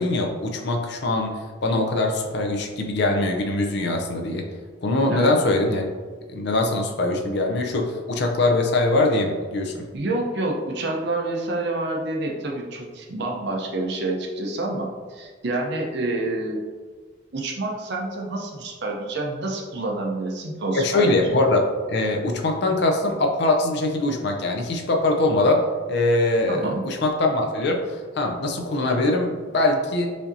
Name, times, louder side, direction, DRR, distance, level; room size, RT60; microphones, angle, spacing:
voice 1, 0.0-4.4 4.8-5.9 6.3-9.9 20.7-21.6 21.9-30.1, left 2 dB, 55° left, 2 dB, 0.5 m, -22 dB
voice 2, 9.9-16.6 17.3-21.2 26.5-26.8, right 2 dB, 55° right, 0 dB, 0.6 m, -28 dB
4.9 x 2.7 x 2.6 m, 1.5 s
head